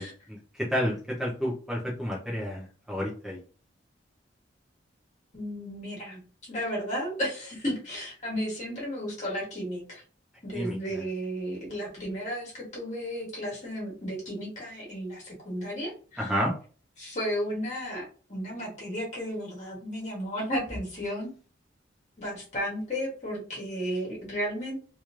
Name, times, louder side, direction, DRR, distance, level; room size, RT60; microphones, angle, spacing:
voice 1, 0.0-3.4 10.5-11.0 16.2-16.5, equal, 5° right, -5 dB, 0.6 m, -31 dB
voice 2, 5.3-10.0 10.4-16.3 17.0-18.0 18.3-21.3 22.2-24.8, equal, 40° left, -4 dB, 1.6 m, -33 dB
3.1 x 3.0 x 2.4 m, 0.38 s
head